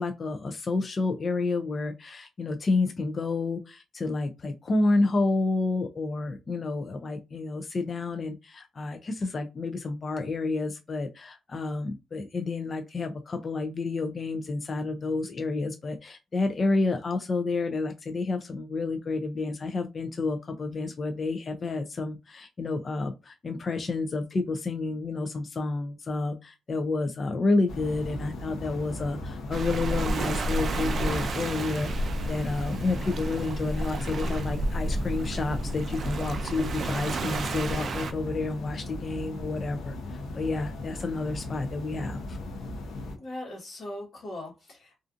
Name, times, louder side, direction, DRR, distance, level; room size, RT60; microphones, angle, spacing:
voice 1, 0.0-42.4, left 3 dB, 40° left, 6 dB, 0.4 m, -30 dB
sound 1, 27.7-43.2, left 2 dB, 90° left, 0.7 m, -37 dB
Waves surf, 29.5-38.1, right 2 dB, 55° right, 0.4 m, -31 dB
voice 2, 43.2-44.9, left 1 dB, 60° left, -5 dB, 1.1 m, -39 dB
2.4 x 2.4 x 2.5 m, 0.26 s
cardioid pair, 105°, 0 cm